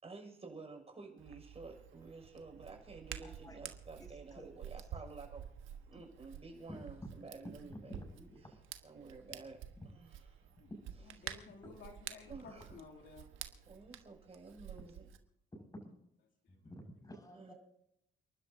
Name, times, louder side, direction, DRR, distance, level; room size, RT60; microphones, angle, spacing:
voice 1, 0.0-5.4 5.9-8.0 8.8-9.6 9.9-10.1 10.3-10.4 12.3-12.8 13.7-15.1 17.3-17.5, right 3 dB, 30° right, 3 dB, 6.3 m, -51 dB
Hands, 1.2-15.2, right 10 dB, 85° right, 1.3 m, -50 dB
voice 2, 3.2-3.6 4.0-4.5 5.9-6.0 6.7-6.8 7.7-8.6 10.7-10.8 11.6-11.7 15.5-15.9 16.5-17.5, equal, 20° left, 4 dB, 6.1 m, -51 dB
voice 3, 11.0-13.3 16.4-16.6, left 4 dB, 70° left, 0 dB, 2.9 m, -55 dB
30.0 x 12.0 x 2.8 m, 0.79 s
cardioid pair, 90°, 20 cm